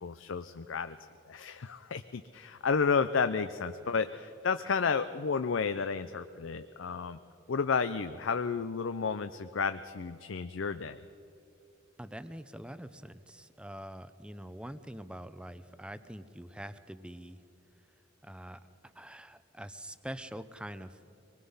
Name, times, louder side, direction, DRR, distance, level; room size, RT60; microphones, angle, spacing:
voice 1, 0.0-1.0 1.3-7.2 7.5-11.0, left 5 dB, 80° left, 11 dB, 0.5 m, -31 dB
voice 2, 12.0-17.4 18.2-18.6 18.9-21.0, equal, 5° right, 12 dB, 0.6 m, -44 dB
24.5 x 20.0 x 5.6 m, 2.8 s
head